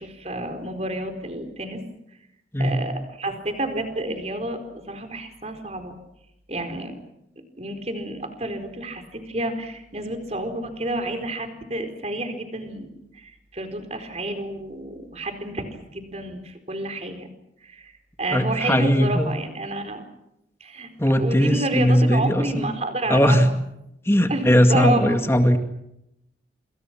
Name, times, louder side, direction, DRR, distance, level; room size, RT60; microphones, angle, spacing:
voice 1, 0.0-1.8 2.6-2.9 3.2-6.0 6.5-7.0 7.6-15.7 15.9-17.3 17.6-17.9 18.2-20.0 20.6-20.9 21.2-23.5 24.3-24.4 24.7-25.2, right 2 dB, 35° right, 7 dB, 4.3 m, -29 dB
voice 2, 18.3-19.3 21.0-22.7 23.1-23.5 24.1-25.6, equal, 15° left, 6 dB, 2.2 m, -19 dB
27.5 x 27.0 x 6.1 m, 0.82 s
head